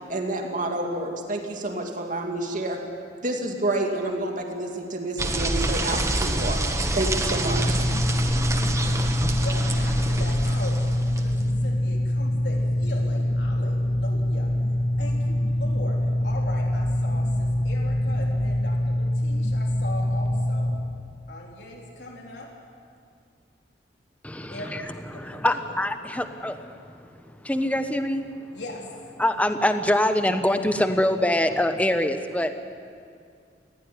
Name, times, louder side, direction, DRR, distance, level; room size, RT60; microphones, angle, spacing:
voice 1, 0.1-2.8 3.2-6.6 6.9-7.8, right 2 dB, 50° right, 2 dB, 2.4 m, -28 dB
sound 1, 5.2-11.4, right 1 dB, 15° right, 1.4 m, -27 dB
sound 2, 7.3-20.7, left 1 dB, 55° left, 3.0 m, -24 dB
voice 2, 9.4-14.5 15.0-20.8 21.3-22.5 24.5-24.8 25.1-25.6 28.5-28.9, left 1 dB, 80° left, -1 dB, 3.6 m, -39 dB
voice 3, 24.2-24.9 25.1-28.3 29.2-32.5, left 1 dB, 10° left, 8 dB, 1.1 m, -24 dB
19.5 x 17.0 x 9.9 m, 2.3 s
head